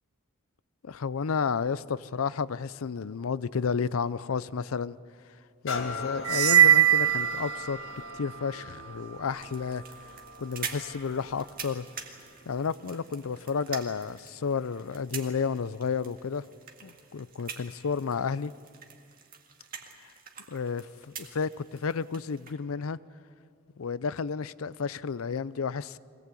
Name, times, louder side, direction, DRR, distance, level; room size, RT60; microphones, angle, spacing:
voice 1, 0.8-5.0 5.6-7.8 8.1-9.8 10.4-11.8 12.5-16.4 16.8-18.5 20.5-23.0 23.8-26.0, left 5 dB, 80° left, 0.5 m, -31 dB
sound 1, 5.7-13.3 13.8-13.9, left 4 dB, 60° left, 2.0 m, -41 dB
sound 2, 6.2-8.1, right 10 dB, 80° right, 0.5 m, -21 dB
sound 3, 9.3-22.5, right 6 dB, 45° right, 1.9 m, -45 dB
23.5 x 18.0 x 8.4 m
head